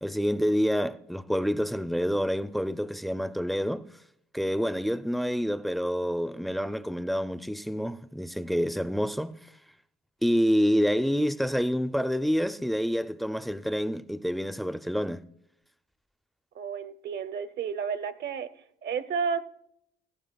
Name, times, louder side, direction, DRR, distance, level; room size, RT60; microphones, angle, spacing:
voice 1, 0.0-3.8 4.3-9.3 10.2-15.2, equal, ahead, 0.4 m, -27 dB
voice 2, 16.5-18.5 18.8-19.4, right 6 dB, 55° right, 0.7 m, -31 dB
17.0 x 14.5 x 2.3 m
cardioid pair, 90°, 20 cm